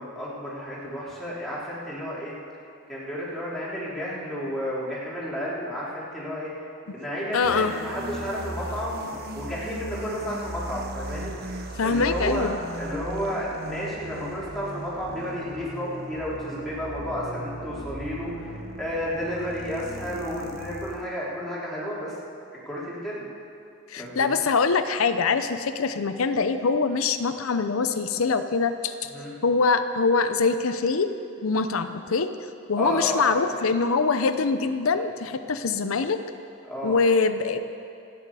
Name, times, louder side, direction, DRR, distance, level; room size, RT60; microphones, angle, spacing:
voice 1, 0.0-2.3 2.9-6.5 6.9-11.5 11.8-12.5 12.8-22.1 22.6-23.3 24.0-24.4 29.1-29.3 32.8-33.3 36.6-37.0, equal, ahead, -8 dB, 3.4 m, -32 dB
voice 2, 7.3-7.7 11.8-12.6 23.9-29.1 29.4-31.1 31.4-32.3 32.7-36.2 36.8-37.6, left 4 dB, 90° left, 9 dB, 0.6 m, -23 dB
sound 1, 7.4-21.1, right 1 dB, 50° right, 1.2 m, -37 dB
27.0 x 9.1 x 4.9 m, 2.6 s
head